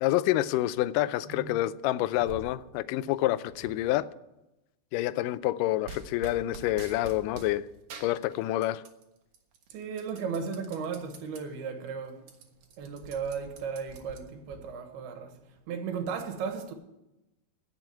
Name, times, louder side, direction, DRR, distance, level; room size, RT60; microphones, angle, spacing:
voice 1, 0.0-4.1 4.9-7.7 8.0-8.8, left 15 dB, 90° left, 1.8 m, -28 dB
voice 2, 1.3-1.6 9.7-12.3 12.8-15.4 15.7-16.7, right 6 dB, 90° right, 3.4 m, -35 dB
sound 1, 5.9-7.5 7.9-9.0 9.3-11.4 11.8-11.9 12.2-14.6, right 5 dB, 60° right, 2.6 m, -46 dB
16.5 x 7.0 x 9.0 m
omnidirectional pair, 4.4 m